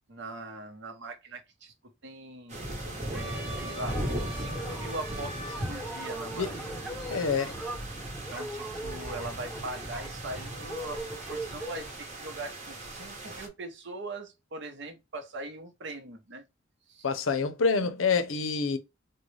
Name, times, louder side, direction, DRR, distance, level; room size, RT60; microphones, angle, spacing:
voice 1, 0.1-1.7 2.0-2.6 3.1-4.1 4.3-6.5 8.3-11.0 11.3-16.4 16.9-17.1, right 2 dB, 60° right, 0.8 m, -41 dB
sound 1, 2.5-13.5, right 1 dB, 40° right, 1.0 m, -38 dB
sound 2, 3.1-11.9, right 1 dB, 5° right, 1.0 m, -40 dB
voice 2, 7.1-7.5 17.0-18.8, left 5 dB, 80° left, 0.6 m, -27 dB
3.8 x 2.1 x 3.1 m
head